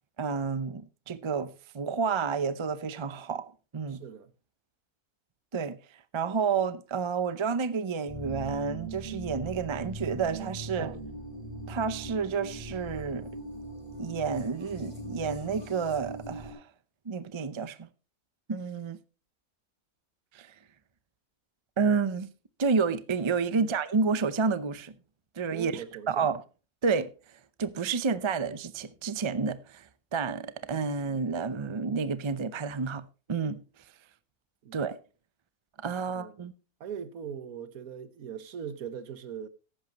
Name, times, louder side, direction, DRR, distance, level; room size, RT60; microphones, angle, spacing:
voice 1, 0.2-4.0 5.5-5.8 6.1-10.9 11.7-13.3 14.0-16.6 17.1-17.9 18.5-19.0 20.3-20.5 21.8-22.3 22.6-24.9 25.4-26.4 26.8-27.1 27.6-29.9 30.1-33.0 33.3-33.6 34.7-35.0 35.8-36.5, right 5 dB, 35° right, 0.4 m, -30 dB
voice 2, 3.9-4.3 10.8-11.0 23.5-23.7 25.5-26.3 34.6-34.8 36.1-36.4 36.8-39.5, right 8 dB, 75° right, 1.4 m, -40 dB
sound 1, 8.1-16.5, right 1 dB, 20° right, 4.9 m, -40 dB
14.5 x 11.0 x 3.0 m
omnidirectional pair, 1.6 m